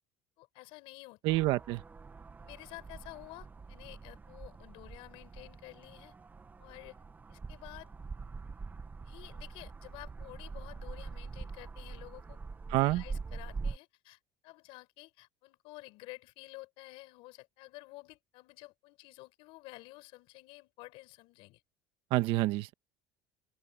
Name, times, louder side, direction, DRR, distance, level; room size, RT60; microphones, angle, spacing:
voice 1, 0.4-1.4 2.4-6.2 6.6-7.0 7.3-7.9 9.0-12.4 12.7-21.6, left 21 dB, 75° left, 5.3 m, -51 dB
voice 2, 1.2-1.8 12.7-13.0 22.1-22.7, right 18 dB, 70° right, 1.5 m, -28 dB
sound 1, 1.3-13.8, right 4 dB, 20° right, 1.6 m, -44 dB
open air
cardioid pair, 125°, 9 cm